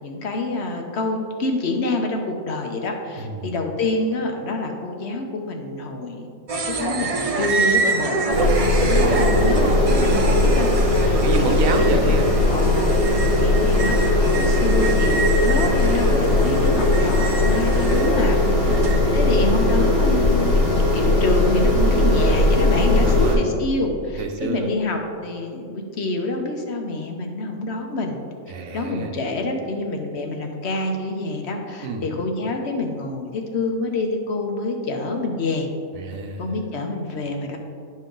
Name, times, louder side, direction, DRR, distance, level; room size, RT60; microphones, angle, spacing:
voice 1, 0.0-6.3 6.7-11.2 11.7-12.1 12.5-18.4 18.6-18.8 19.1-20.6 20.9-28.2 28.7-35.7 36.4-37.6, left 2 dB, 60° left, 3 dB, 1.0 m, -27 dB
voice 2, 3.2-3.5 8.9-9.3 10.9-12.3 18.6-19.4 23.0-23.5 24.1-24.7 28.5-29.1 31.8-32.1 35.9-36.6, right 3 dB, 80° right, 4 dB, 1.3 m, -29 dB
sound 1, 6.5-19.0, right 3 dB, 45° right, 0.5 m, -26 dB
sound 2, 8.3-23.3, left 2 dB, 75° left, 2.1 m, -19 dB
10.5 x 5.3 x 3.8 m, 2.2 s
omnidirectional pair, 1.4 m